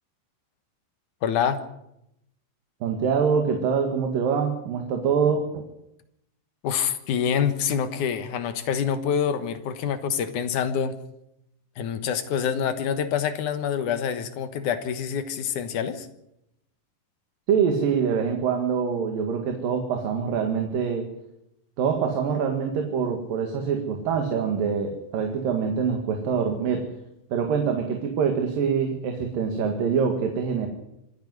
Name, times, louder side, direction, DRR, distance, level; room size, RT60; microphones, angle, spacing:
voice 1, 1.2-1.6 6.6-10.9 11.8-16.1, left 8 dB, 65° left, 10 dB, 2.6 m, -26 dB
voice 2, 2.8-5.6 17.5-21.1 21.8-26.9 27.3-30.7, right 6 dB, 70° right, 4 dB, 3.5 m, -25 dB
26.0 x 10.5 x 9.7 m, 0.82 s
omnidirectional pair, 4.2 m